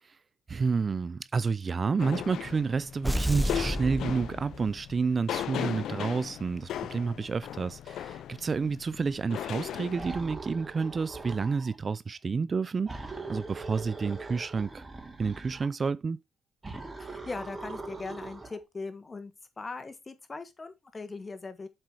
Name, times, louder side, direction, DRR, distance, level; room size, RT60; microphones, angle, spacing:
voice 1, 0.5-14.8 15.2-16.2, right 5 dB, 35° right, 0.3 m, -30 dB
sound 1, 2.0-10.2, left 10 dB, 75° left, 0.4 m, -37 dB
sound 2, 3.0-4.9, equal, ahead, 0.6 m, -31 dB
sound 3, 9.9-11.8 12.9-15.7 16.6-18.6, right 3 dB, 20° right, 2.4 m, -41 dB
voice 2, 17.0-21.7, left 3 dB, 25° left, 1.3 m, -40 dB
7.5 x 4.4 x 4.7 m
cardioid pair, 90°, 0 cm